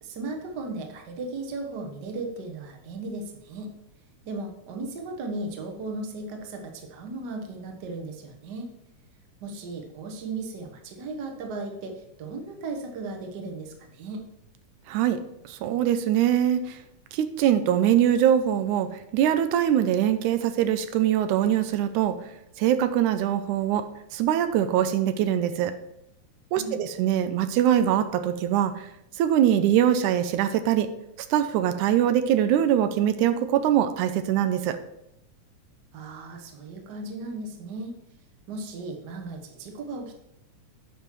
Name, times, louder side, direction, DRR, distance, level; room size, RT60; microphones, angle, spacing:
voice 1, 0.0-3.7 4.2-8.7 9.4-14.2 26.5-26.8 35.9-38.0 38.5-40.2, right 3 dB, 50° right, 3 dB, 1.3 m, -36 dB
voice 2, 14.9-15.2 15.5-16.8 17.1-22.2 22.6-23.9 24.1-25.7 26.5-28.7 29.2-30.9 31.3-34.8, right 10 dB, 85° right, 10 dB, 2.0 m, -23 dB
8.8 x 5.6 x 4.6 m, 0.83 s
omnidirectional pair, 3.5 m